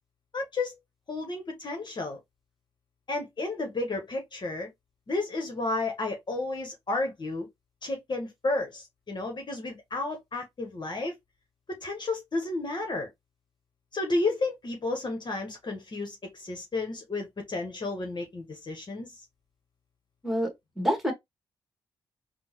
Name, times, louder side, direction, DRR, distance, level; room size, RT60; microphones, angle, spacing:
voice 1, 0.3-0.8 1.1-2.2 3.1-4.7 5.1-7.5 7.8-11.1 11.7-13.1 13.9-19.1, left 2 dB, 45° left, 1.0 m, -32 dB
voice 2, 20.8-21.1, equal, 5° right, 1.7 m, -26 dB
3.5 x 2.1 x 2.9 m
supercardioid pair, 50°, 11 cm